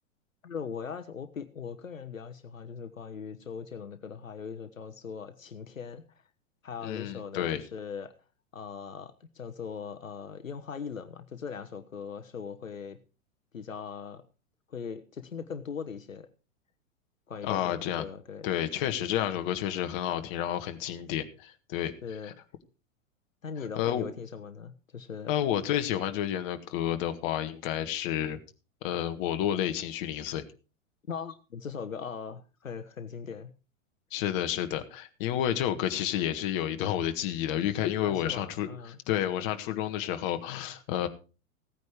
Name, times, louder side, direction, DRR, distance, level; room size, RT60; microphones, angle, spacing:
voice 1, 0.4-6.0 6.6-8.1 8.5-13.0 13.5-14.2 14.7-16.3 17.3-18.5 22.0-22.3 23.4-25.3 31.1-33.5 38.0-39.0, left 6 dB, 75° left, 9 dB, 1.3 m, -40 dB
voice 2, 6.8-7.6 17.4-18.0 18.4-21.9 23.8-24.0 25.3-28.4 28.8-30.4 34.1-38.7 39.1-41.1, left 11 dB, 40° left, 8 dB, 1.7 m, -30 dB
16.0 x 9.4 x 4.7 m, 0.34 s
figure-of-eight pair, 100°, 40 cm